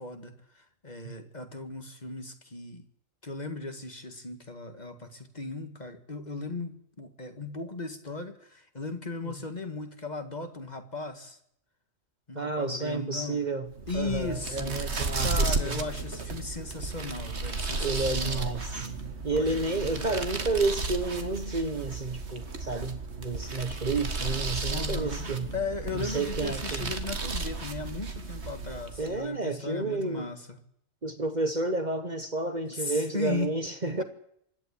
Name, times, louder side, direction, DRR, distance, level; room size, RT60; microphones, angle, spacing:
voice 1, 0.0-2.8 3.2-11.4 12.3-13.4 13.9-18.5 19.3-20.2 24.7-30.6 32.7-33.5, left 3 dB, 35° left, 2.0 m, -37 dB
voice 2, 12.3-13.7 13.9-15.8 17.8-18.9 19.2-25.5 25.9-26.9 29.0-30.3 31.0-34.0, right 3 dB, 35° right, 1.3 m, -31 dB
sound 1, 13.7-29.2, right 3 dB, 55° right, 2.0 m, -33 dB
25.5 x 11.5 x 10.0 m
omnidirectional pair, 1.3 m